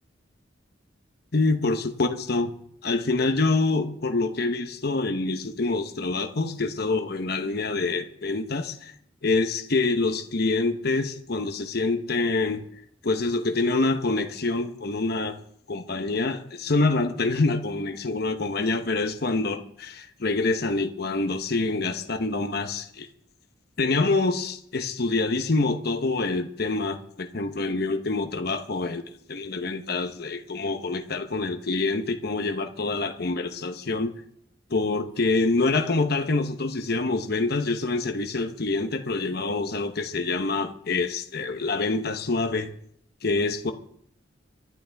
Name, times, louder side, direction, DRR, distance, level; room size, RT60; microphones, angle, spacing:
voice 1, 1.3-2.5 2.8-8.9 9.2-12.6 13.0-15.4 15.7-23.1 23.8-34.2 34.7-42.7 43.2-43.7, left 3 dB, 55° left, 5 dB, 1.0 m, -26 dB
24.5 x 11.5 x 3.5 m, 0.67 s
head